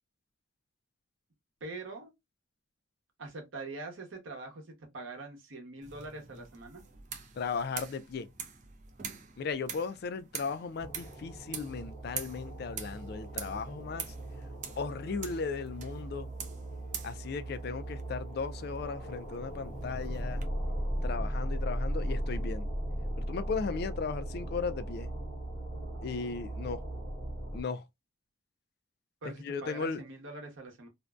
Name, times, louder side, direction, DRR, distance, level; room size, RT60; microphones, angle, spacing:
voice 1, 1.6-2.1 3.2-6.8 29.2-30.9, right 2 dB, 80° right, 0.9 m, -43 dB
sound 1, 5.8-20.5, right 7 dB, 40° right, 0.4 m, -46 dB
voice 2, 7.4-8.3 9.4-14.1 14.8-16.3 17.0-20.4 21.0-22.7 23.2-25.1 26.0-26.8 27.5-27.8 29.2-30.0, left 5 dB, 50° left, 0.3 m, -36 dB
sound 2, 10.8-27.6, right 1 dB, 10° left, 0.9 m, -37 dB
2.5 x 2.1 x 2.2 m
head